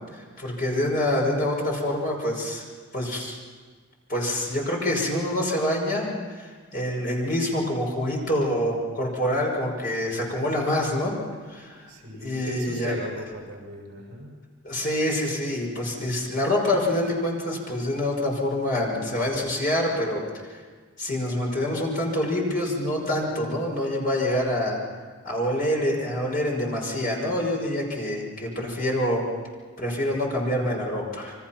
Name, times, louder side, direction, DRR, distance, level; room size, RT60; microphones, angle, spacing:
voice 1, 0.1-2.6 2.9-3.4 4.1-11.2 11.5-11.9 12.2-13.0 14.6-20.2 20.5-20.6 21.0-24.8 25.2-29.2 29.8-31.3, left 1 dB, 40° left, -1 dB, 5.7 m, -26 dB
voice 2, 11.9-14.4, equal, 50° right, 0 dB, 6.4 m, -37 dB
27.5 x 24.0 x 5.9 m, 1.5 s
head